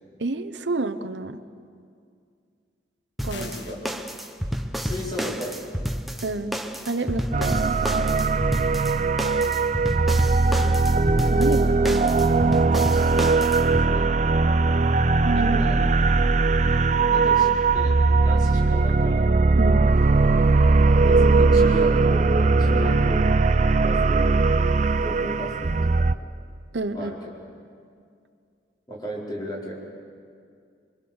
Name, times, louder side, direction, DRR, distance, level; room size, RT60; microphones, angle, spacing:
voice 1, 0.2-1.4 3.2-3.5 6.2-6.6 6.8-8.4 11.1-12.1 15.2-15.6 17.4-17.5 19.5-19.9 26.7-27.1, right 2 dB, 85° right, 9 dB, 0.9 m, -30 dB
sound 1, 3.2-13.9, equal, ahead, 0.9 m, -31 dB
sound 2, 3.3-3.9, left 4 dB, 80° left, 1.7 m, -41 dB
voice 2, 3.3-3.8 4.8-5.7 12.9-13.4 13.8-14.1 15.4-15.8 16.6-17.9 18.2-19.3 21.0-23.2 23.8-24.3 25.0-26.0 26.9-27.2 28.9-29.7, equal, 25° left, -4 dB, 4.7 m, -34 dB
sound 3, 7.3-26.1, right 3 dB, 40° right, 0.5 m, -20 dB
25.0 x 24.0 x 7.2 m, 2.3 s
head